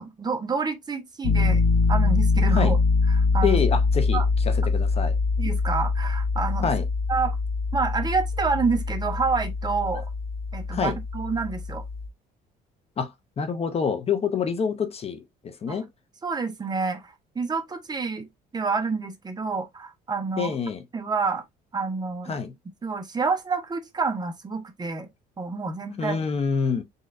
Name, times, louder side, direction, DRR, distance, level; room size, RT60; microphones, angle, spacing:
voice 1, 0.0-1.6 1.9-2.8 3.1-3.6 4.1-4.3 5.4-6.7 7.1-7.4 7.7-10.0 10.5-11.8 15.7-15.8 16.2-20.5 20.9-21.4 21.7-22.4 22.8-25.1 25.4-26.2, right 4 dB, 25° right, 1.0 m, -28 dB
Piano, 1.2-12.1, left 4 dB, 80° left, 0.8 m, -24 dB
voice 2, 3.4-5.1 6.6-6.8 9.9-10.0 10.7-11.0 13.0-15.9 20.4-20.8 22.3-22.5 26.0-26.8, left 6 dB, 35° left, 0.7 m, -27 dB
4.0 x 3.8 x 2.5 m
cardioid pair, 110°, 17 cm